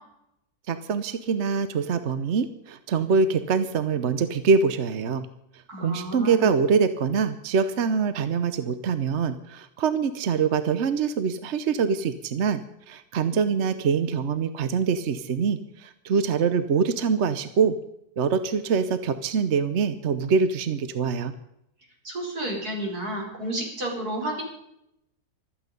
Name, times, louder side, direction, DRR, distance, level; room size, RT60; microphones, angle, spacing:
voice 1, 0.7-5.3 5.8-17.8 18.2-21.3, right 5 dB, 55° right, 11 dB, 1.0 m, -24 dB
voice 2, 5.7-6.5 22.0-24.4, right 1 dB, 70° right, -1 dB, 5.3 m, -31 dB
25.5 x 8.8 x 5.3 m, 0.82 s
omnidirectional pair, 1.7 m